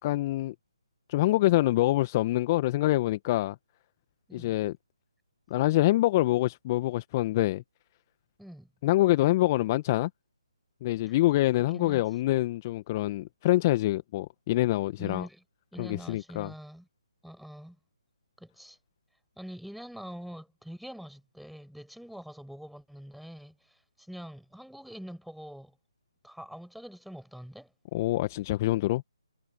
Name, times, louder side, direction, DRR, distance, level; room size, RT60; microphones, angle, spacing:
voice 1, 0.0-0.5 1.1-3.5 4.3-4.7 5.5-7.6 8.8-10.1 10.8-15.3 15.8-16.5 27.9-29.0, left 16 dB, 30° left, 1.5 m, -25 dB
voice 2, 8.4-8.7 11.1-11.2 11.7-12.0 15.0-15.4 15.7-16.9 17.2-17.8 18.4-18.8 19.4-25.8 26.2-27.7, equal, ahead, 7.3 m, -44 dB
figure-of-eight pair, 140°, 3 cm